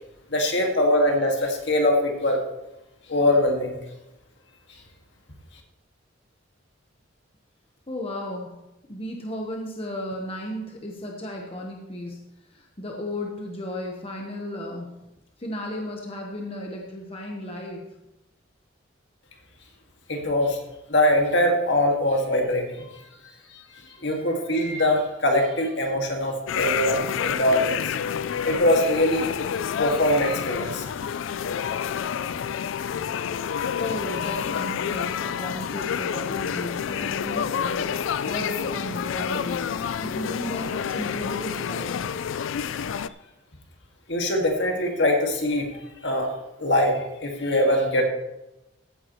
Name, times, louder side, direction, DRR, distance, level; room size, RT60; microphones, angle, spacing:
voice 1, 0.3-2.4 3.1-3.8 20.1-20.6 20.9-22.9 23.5-27.9 28.4-30.8 31.5-31.6 44.1-45.7 46.0-46.3 46.6-48.0, left 1 dB, 65° left, 2 dB, 2.0 m, -23 dB
voice 2, 7.9-8.6 8.9-15.0 15.4-18.0 24.0-24.4 33.8-42.2, left 1 dB, 30° left, 0 dB, 1.1 m, -34 dB
sound 1, 26.5-43.1, left 8 dB, 80° left, 0.4 m, -29 dB
15.0 x 9.6 x 3.1 m, 0.96 s
head